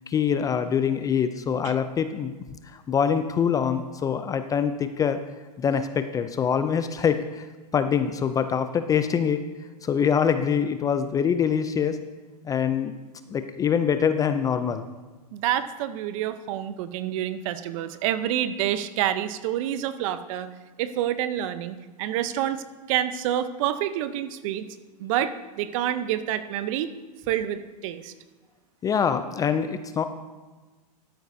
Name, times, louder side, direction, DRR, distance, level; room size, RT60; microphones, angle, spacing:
voice 1, 0.1-2.4 2.7-5.2 5.6-7.5 7.7-9.4 9.8-12.0 12.4-13.0 13.3-14.9 28.8-30.0, left 7 dB, 15° left, 10 dB, 0.4 m, -24 dB
voice 2, 15.3-20.5 20.8-24.7 25.0-26.9 27.3-28.1, right 11 dB, 50° right, 13 dB, 0.7 m, -28 dB
13.0 x 9.1 x 2.7 m, 1.3 s
hypercardioid pair, 115°, 21 cm